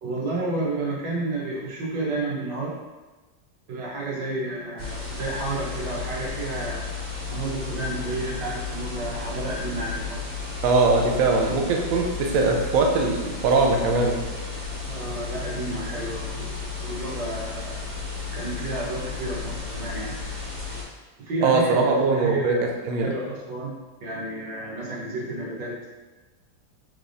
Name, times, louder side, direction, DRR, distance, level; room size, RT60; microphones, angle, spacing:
voice 1, 0.0-2.8 3.7-6.8 7.3-10.2 14.9-17.8 18.3-20.1 21.2-23.7 24.0-25.7, right 2 dB, 65° right, -5 dB, 1.6 m, -31 dB
sound 1, 4.8-20.8, left 4 dB, 25° right, 1.3 m, -33 dB
voice 2, 10.6-14.3 21.4-22.5 22.8-23.1, right 3 dB, 90° right, 1 dB, 0.7 m, -21 dB
4.7 x 3.3 x 2.6 m, 1.2 s
omnidirectional pair, 2.2 m